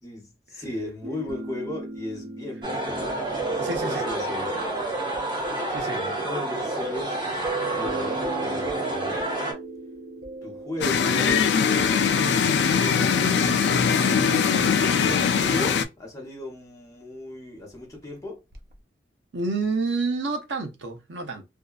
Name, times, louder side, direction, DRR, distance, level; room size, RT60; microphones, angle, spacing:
voice 1, 0.0-3.3 3.7-5.0 5.9-7.4 7.7-9.2 10.4-11.5 12.6-18.4, left 2 dB, 20° left, 0.8 m, -36 dB
sound 1, 1.0-14.2 18.5-18.7, right 4 dB, 55° right, 0.5 m, -38 dB
sound 2, 2.6-9.5, right 2 dB, 25° right, 1.0 m, -29 dB
voice 2, 3.5-4.0 5.7-6.0 19.3-21.5, right 3 dB, 90° right, 0.7 m, -29 dB
sound 3, 10.8-15.8, left 6 dB, 75° left, 0.3 m, -21 dB
2.7 x 2.2 x 2.3 m
head